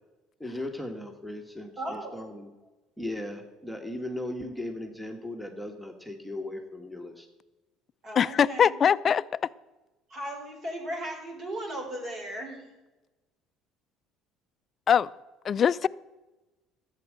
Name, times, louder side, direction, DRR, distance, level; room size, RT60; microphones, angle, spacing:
voice 1, 0.4-2.5 3.0-7.3, left 1 dB, ahead, 1.5 m, -37 dB
voice 2, 1.8-2.2 8.0-8.8 10.1-12.7, right 1 dB, 45° right, 4.2 m, -36 dB
voice 3, 8.2-9.2 14.9-15.1 15.4-15.9, left 8 dB, 45° left, 0.4 m, -22 dB
12.0 x 8.3 x 7.7 m
supercardioid pair, 90°, 0 cm